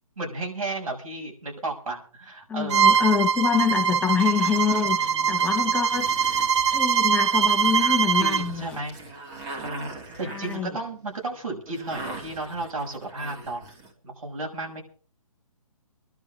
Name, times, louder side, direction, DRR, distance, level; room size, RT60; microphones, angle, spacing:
voice 1, 0.2-3.0 3.5-3.7 5.0-5.5 8.2-9.0 9.6-9.9 10.2-13.6 14.0-14.8, right 2 dB, 80° right, 0 dB, 6.6 m, -33 dB
voice 2, 2.5-6.1 6.7-8.8 10.2-10.8, left 7 dB, 5° left, 2 dB, 1.5 m, -26 dB
Bowed string instrument, 2.7-8.5, right 7 dB, 55° right, 0.9 m, -22 dB
sound 1, 3.9-13.9, right 2 dB, 20° right, 2.8 m, -42 dB
26.0 x 11.5 x 3.6 m, 0.40 s
hypercardioid pair, 145°, 18 cm